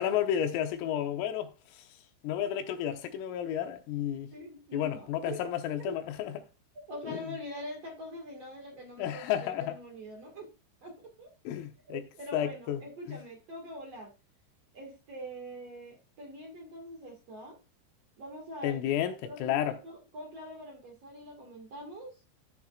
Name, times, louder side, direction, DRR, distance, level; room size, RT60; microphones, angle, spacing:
voice 1, 0.0-1.9 2.2-4.3 4.7-6.5 7.0-7.4 9.0-9.8 11.5-12.0 12.3-12.8 13.1-13.2 18.6-19.8, left 10 dB, 85° left, 3.7 m, -32 dB
voice 2, 4.3-5.4 5.8-6.0 6.9-10.5 10.8-11.3 11.9-14.1 14.7-17.6 18.2-18.9 19.2-22.2, equal, 55° right, 1.8 m, -44 dB
14.5 x 7.1 x 2.4 m
omnidirectional pair, 5.8 m